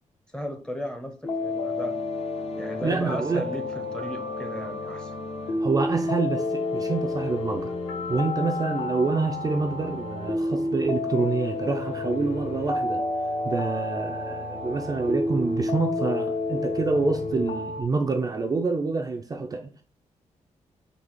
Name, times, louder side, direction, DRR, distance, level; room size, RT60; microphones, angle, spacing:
voice 1, 0.3-1.9 2.6-5.2, equal, 5° left, 0.7 m, -35 dB
sound 1, 1.2-17.8, left 2 dB, 55° left, 0.9 m, -30 dB
voice 2, 2.8-3.5 5.6-7.8 8.1-13.0 13.4-19.8, right 4 dB, 30° right, 0.4 m, -27 dB
4.1 x 2.7 x 4.4 m
wide cardioid pair, 135°, 13 cm